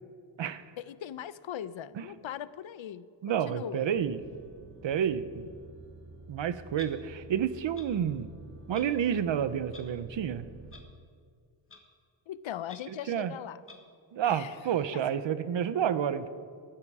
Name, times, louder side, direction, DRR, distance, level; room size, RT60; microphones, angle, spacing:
voice 1, 0.8-3.9 12.3-13.6 14.2-14.6 14.9-15.2, left 10 dB, 80° left, 16 dB, 0.7 m, -40 dB
voice 2, 3.2-4.2 4.8-5.5 6.3-8.3 8.7-10.5 12.9-13.3 14.1-16.3, right 9 dB, 70° right, 13 dB, 0.9 m, -30 dB
sound 1, 4.0-10.8, right 2 dB, 40° right, 1.8 m, -50 dB
Clock, 6.8-6.9 7.7-7.9 8.7-8.9 9.7-9.8 10.7-10.8 11.7-11.8 12.7-12.8 13.7-13.8, left 3 dB, 30° left, 1.6 m, -48 dB
19.5 x 14.5 x 4.9 m, 2.2 s
wide cardioid pair, 170°, 46 cm